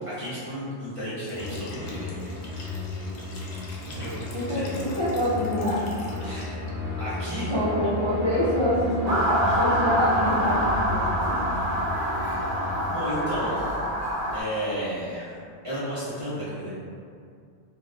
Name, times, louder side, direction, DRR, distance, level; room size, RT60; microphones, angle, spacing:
voice 1, 0.1-2.1 3.7-4.8 6.2-6.6 7.0-7.5 9.4-9.7 12.0-12.4 12.9-13.8 14.3-15.4 15.6-16.8, equal, 30° right, -12 dB, 0.9 m, -33 dB
Liquid, 1.2-6.7, left 2 dB, 70° left, 0.8 m, -46 dB
sound 1, 1.3-12.9, left 2 dB, 10° right, 1.1 m, -34 dB
voice 2, 4.3-5.9 7.5-11.4, equal, 30° left, -13 dB, 0.6 m, -26 dB
Motor vehicle (road) / Siren, 9.1-14.4, equal, 80° right, 1.1 m, -26 dB
2.6 x 2.5 x 3.5 m, 2.3 s
omnidirectional pair, 1.2 m